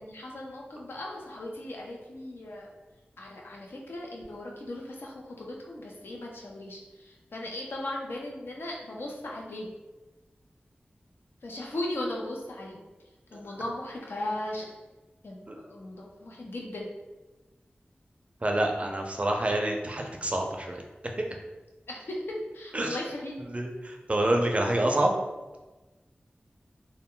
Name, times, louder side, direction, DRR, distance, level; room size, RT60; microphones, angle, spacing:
voice 1, 0.0-2.7 3.2-9.7 11.4-12.8 13.3-14.7 15.2-16.9 21.9-22.2 22.5-23.4, left 1 dB, 85° left, -2 dB, 0.5 m, -37 dB
voice 2, 18.4-20.8 21.2-21.3 22.7-23.0 23.5-25.2, right 1 dB, 35° right, 2 dB, 0.4 m, -27 dB
2.1 x 2.1 x 3.6 m, 1.2 s
wide cardioid pair, 80°, 4 cm